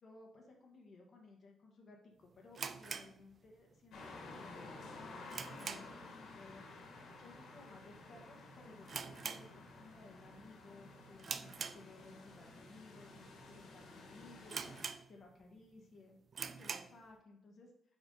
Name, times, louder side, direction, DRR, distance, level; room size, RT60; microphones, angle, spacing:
voice 1, 0.0-6.6 7.1-14.8 15.1-17.7, left 3 dB, 35° left, -1 dB, 1.4 m, -59 dB
sound 1, 2.5-3.9 4.2-4.3 4.8-6.1 6.4-6.7 7.0-7.1 7.8-8.1 8.3-8.4 8.8-10.0 10.4-10.7 11.2-12.3 12.9-13.0 13.6-13.7 13.9-14.0 14.5-15.4 15.8-15.9 16.3-17.0, right 6 dB, 40° right, 0.4 m, -44 dB
sound 2, 3.9-14.8, left 3 dB, 70° left, 1.8 m, -53 dB
7.1 x 5.2 x 3.9 m, 0.73 s
cardioid pair, 150°, 0 cm